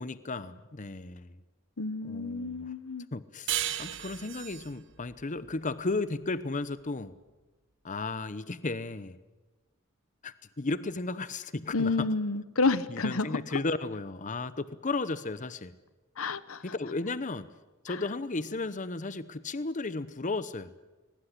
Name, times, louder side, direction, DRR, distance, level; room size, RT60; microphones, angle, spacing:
voice 1, 0.0-1.4 2.0-2.7 3.1-3.5 3.8-7.2 7.8-9.2 10.2-12.1 12.9-15.7 16.6-17.5 17.8-20.7, left 3 dB, 35° left, 15 dB, 0.8 m, -34 dB
voice 2, 1.8-3.1 11.7-13.6 16.2-16.6 17.9-18.0, left 3 dB, 70° left, 16 dB, 1.0 m, -30 dB
sound 1, 3.5-6.6, right 12 dB, 60° right, 1.4 m, -36 dB
21.5 x 20.0 x 10.0 m, 1.2 s
head